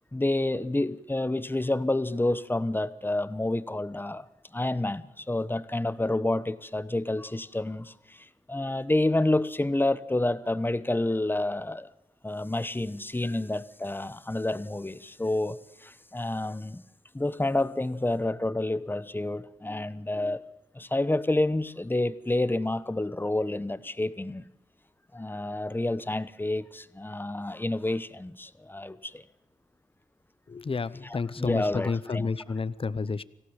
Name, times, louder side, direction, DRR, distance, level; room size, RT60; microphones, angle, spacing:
voice 1, 0.1-4.3 4.5-11.9 12.2-16.8 17.1-20.4 20.7-24.5 25.1-29.2 31.0-32.3, left 2 dB, 15° left, 1.1 m, -29 dB
voice 2, 30.5-33.2, left 4 dB, 45° left, 0.8 m, -30 dB
26.0 x 16.5 x 7.3 m
wide cardioid pair, 115°, 13 cm